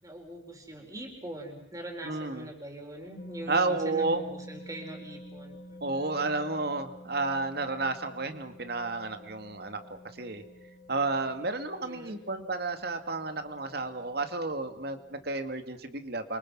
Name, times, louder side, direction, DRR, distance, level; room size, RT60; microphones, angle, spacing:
voice 1, 0.0-6.2 11.8-12.2, right 1 dB, 20° right, 1 dB, 4.4 m, -42 dB
voice 2, 2.0-2.5 3.5-4.2 5.8-10.4 10.9-16.4, right 3 dB, 55° right, 8 dB, 2.2 m, -31 dB
sound 1, 3.2-15.3, equal, 40° left, 2.5 m, -49 dB
29.5 x 24.5 x 6.2 m, 0.74 s
head